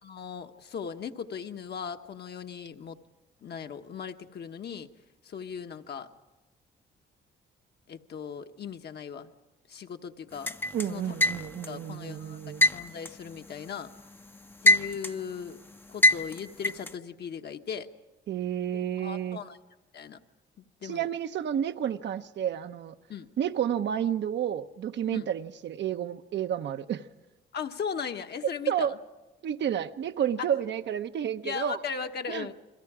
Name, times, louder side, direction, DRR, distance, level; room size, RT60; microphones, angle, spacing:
voice 1, 0.0-3.0 3.4-4.9 5.2-6.1 7.9-9.3 9.7-10.5 10.9-11.1 11.6-12.4 12.7-13.9 14.6-15.6 15.9-17.9 19.0-19.6 19.9-20.2 20.6-21.1 23.1-23.3 25.1-25.3 27.5-29.0 31.4-32.5, left 6 dB, 55° left, 1.2 m, -38 dB
sound 1, 10.5-11.8 12.6-14.0 14.3-15.3 16.0-16.9, left 1 dB, 10° left, 0.6 m, -23 dB
voice 2, 10.7-12.7 18.3-19.4 20.8-22.9 23.4-27.1 28.4-29.0 29.4-31.8 32.3-32.5, right 9 dB, 65° right, 0.8 m, -30 dB
30.0 x 22.0 x 4.9 m
cardioid pair, 90°, 20 cm